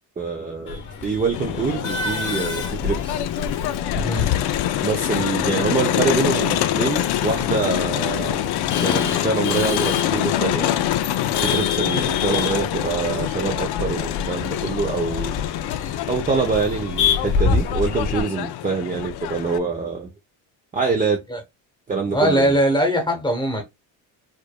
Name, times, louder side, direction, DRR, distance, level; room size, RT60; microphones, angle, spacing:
voice 1, 0.2-3.2 4.8-8.5 8.8-10.8 11.4-15.3 16.1-20.1 20.7-21.2 21.9-22.6, right 4 dB, 20° right, 0.6 m, -25 dB
Male speech man speaking / Laughter / Chatter, 0.7-18.2, left 5 dB, 40° left, 1.1 m, -29 dB
Crowd, 1.3-19.6, left 12 dB, 60° left, 0.5 m, -25 dB
voice 2, 4.0-4.3 21.3-21.4 22.1-23.6, equal, 10° left, 1.0 m, -20 dB
5.0 x 2.6 x 2.2 m
cardioid pair, 125°, 45 cm